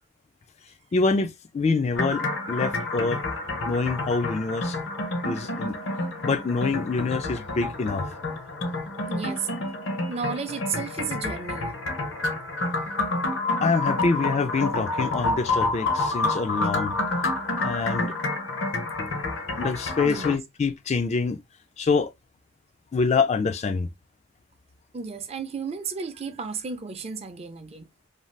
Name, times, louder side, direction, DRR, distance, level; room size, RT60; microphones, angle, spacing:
voice 1, 0.9-3.2 3.7-4.8 5.2-5.8 6.2-8.0 13.6-17.0 17.6-18.1 19.6-21.4 21.8-22.1 22.9-23.9, left 4 dB, 35° left, 0.3 m, -25 dB
sound 1, 2.0-20.3, left 2 dB, 65° left, 0.7 m, -29 dB
voice 2, 9.0-9.6 10.1-11.8 15.8-15.9 20.0-20.4 24.9-27.9, right 5 dB, 30° right, 0.5 m, -33 dB
2.6 x 2.3 x 3.2 m
head